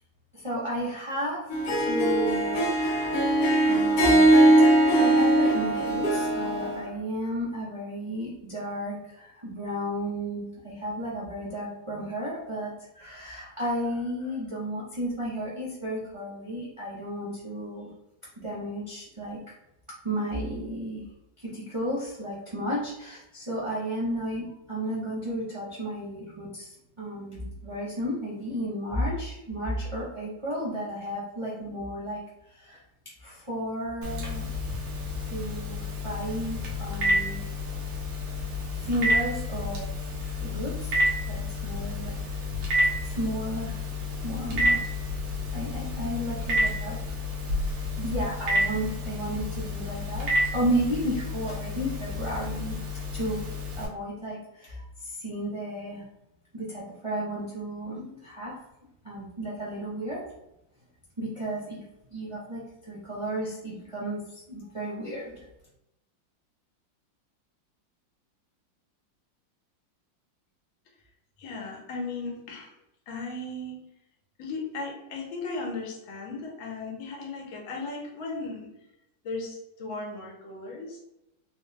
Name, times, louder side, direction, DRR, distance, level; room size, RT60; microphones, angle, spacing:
voice 1, 0.3-17.9 18.4-19.4 20.0-21.0 21.4-26.7 27.0-32.2 32.5-32.8 33.2-34.5 35.3-37.4 38.8-39.9 40.2-40.9 41.3-42.4 43.0-43.8 44.2-44.8 45.5-47.0 47.7-52.8 53.1-56.1 56.5-58.6 59.0-60.2 61.2-61.8 62.1-65.5, equal, 45° right, -7 dB, 0.4 m, -33 dB
Harp, 1.5-6.8, right 1 dB, 70° left, 0.9 m, -21 dB
Telephone, 34.0-53.9, left 1 dB, 80° right, 1.6 m, -30 dB
voice 2, 71.4-72.7 73.1-73.8 74.4-78.7 79.2-81.1, left 3 dB, 85° left, 1 dB, 1.6 m, -36 dB
4.2 x 2.2 x 3.2 m, 0.85 s
omnidirectional pair, 2.1 m